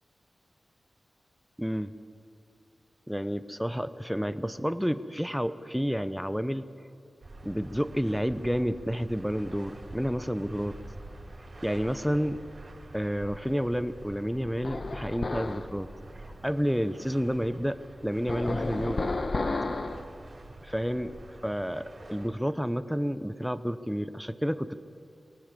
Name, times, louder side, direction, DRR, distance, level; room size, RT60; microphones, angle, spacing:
voice 1, 1.6-1.9 3.1-6.7 7.4-10.8 11.6-12.4 12.9-15.9 16.4-19.1 20.6-21.1 21.4-24.7, equal, ahead, 12 dB, 0.8 m, -30 dB
sound 1, 7.2-22.3, right 2 dB, 45° right, 4.6 m, -47 dB
sound 2, 14.6-15.7 18.3-20.0, left 3 dB, 50° left, 1.1 m, -31 dB
23.5 x 18.5 x 7.6 m, 2.7 s
wide cardioid pair, 90°, 0 cm